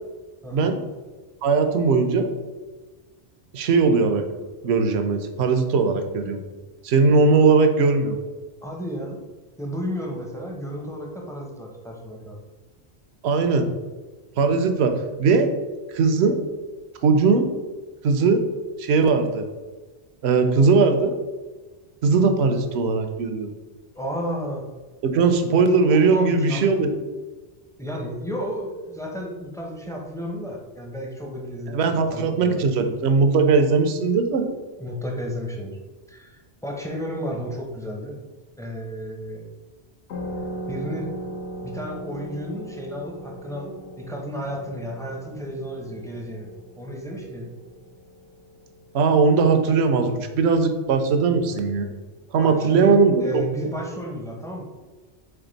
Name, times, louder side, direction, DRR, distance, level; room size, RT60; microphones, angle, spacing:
voice 1, 1.4-2.3 3.5-4.2 4.6-6.4 6.8-8.2 13.2-13.7 14.4-14.9 15.2-15.5 15.9-16.4 17.0-17.5 18.0-18.4 18.8-19.5 20.2-21.1 22.0-23.5 25.0-27.0 31.7-34.5 48.9-51.9 52.3-53.4, right 4 dB, 75° right, 7 dB, 0.8 m, -19 dB
voice 2, 8.6-9.2 9.6-12.4 23.9-24.7 25.9-26.7 27.8-32.6 34.8-35.8 36.1-38.2 38.6-39.5 40.7-41.1 41.6-46.5 46.8-47.5 52.4-53.0 53.2-54.6, equal, 5° left, 0 dB, 0.4 m, -32 dB
sound 1, 40.1-49.3, right 1 dB, 85° left, 1.1 m, -38 dB
3.7 x 3.4 x 3.9 m, 1.3 s
omnidirectional pair, 1.1 m